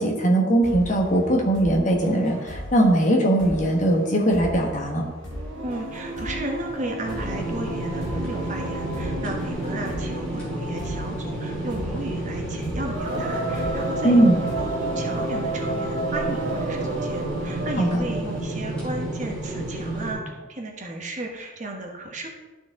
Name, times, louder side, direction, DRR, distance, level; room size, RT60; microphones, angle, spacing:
voice 1, 0.0-5.1 14.0-14.4 17.8-18.0, right 1 dB, 35° left, 0 dB, 1.3 m, -20 dB
sound 1, 0.6-16.1, equal, 65° left, 2.4 m, -38 dB
Singing, 5.3-18.5, right 2 dB, 70° right, 1.2 m, -32 dB
voice 2, 5.6-14.3 14.6-22.3, right 1 dB, 35° right, 2 dB, 1.1 m, -34 dB
sound 2, 7.0-20.1, right 1 dB, 5° left, 2.7 m, -31 dB
12.5 x 4.5 x 3.7 m, 1.2 s
head